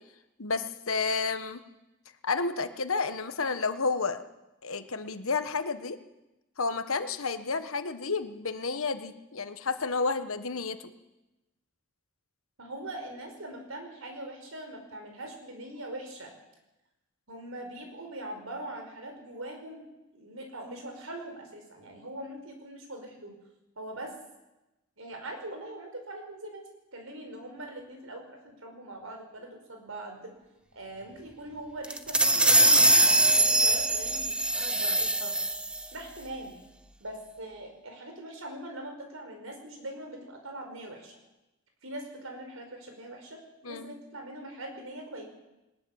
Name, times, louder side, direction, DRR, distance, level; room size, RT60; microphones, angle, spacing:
voice 1, 0.4-1.6 2.2-4.2 4.6-6.0 6.6-10.9 43.6-43.9, left 4 dB, 85° left, 10 dB, 1.4 m, -31 dB
voice 2, 12.6-16.3 17.3-19.8 20.1-23.3 23.8-24.1 25.0-26.6 26.9-30.3 30.7-35.3 35.9-36.6 37.0-41.2 41.8-45.2, right 1 dB, 80° right, 4 dB, 5.1 m, -42 dB
sound 1, 31.8-35.9, right 1 dB, 5° right, 0.7 m, -22 dB
20.0 x 20.0 x 7.3 m, 1.0 s
head